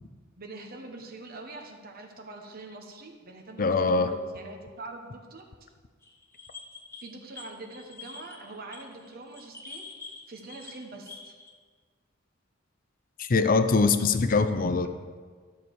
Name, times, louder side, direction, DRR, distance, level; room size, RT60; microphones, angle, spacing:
voice 1, 0.4-5.5 7.0-9.8 10.3-11.4, right 2 dB, 50° right, 3 dB, 1.1 m, -44 dB
voice 2, 3.6-4.1 13.2-14.9, left 4 dB, 45° left, 10 dB, 0.5 m, -23 dB
sound 1, 6.0-11.5, left 4 dB, 10° left, 1.3 m, -46 dB
12.5 x 7.0 x 4.7 m, 1.6 s
head